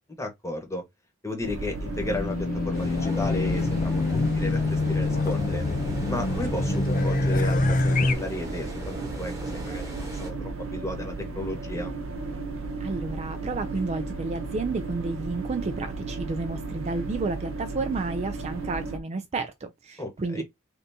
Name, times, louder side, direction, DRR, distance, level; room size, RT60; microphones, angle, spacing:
voice 1, 0.2-0.8 1.2-5.6 6.1-8.9 9.2-11.9 20.0-20.4, left 1 dB, 15° left, 1.0 m, -34 dB
sound 1, 1.4-19.0, right 3 dB, 70° right, 0.7 m, -35 dB
Race car auto racing / Alarm, 1.9-8.2, left 3 dB, 40° left, 0.4 m, -25 dB
sound 2, 2.7-10.3, right 1 dB, 15° right, 1.1 m, -40 dB
voice 2, 12.8-20.4, right 3 dB, 30° right, 0.3 m, -31 dB
3.4 x 2.6 x 2.7 m
head